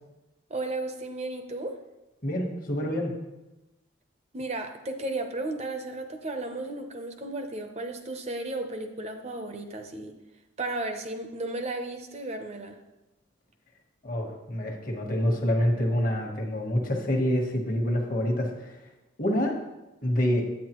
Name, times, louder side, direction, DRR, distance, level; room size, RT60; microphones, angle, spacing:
voice 1, 0.5-1.8 4.3-10.1 10.6-12.8, right 2 dB, 35° right, 6 dB, 0.7 m, -34 dB
voice 2, 2.2-3.1 14.0-18.8 19.2-19.6 20.0-20.5, equal, 45° left, 2 dB, 1.3 m, -27 dB
9.4 x 8.5 x 3.0 m, 1.0 s
head